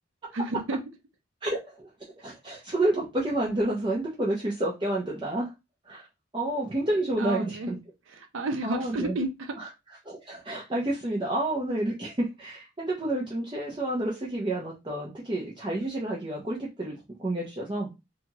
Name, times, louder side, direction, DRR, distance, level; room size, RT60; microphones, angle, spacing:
voice 1, 0.3-0.8 7.2-7.7 8.1-9.7, right 2 dB, 80° right, 0.6 m, -31 dB
voice 2, 1.4-1.9 2.2-5.5 5.8-6.0 6.3-7.8 8.6-9.1 10.1-17.9, right 1 dB, 25° right, 0.5 m, -29 dB
2.8 x 2.3 x 2.8 m
head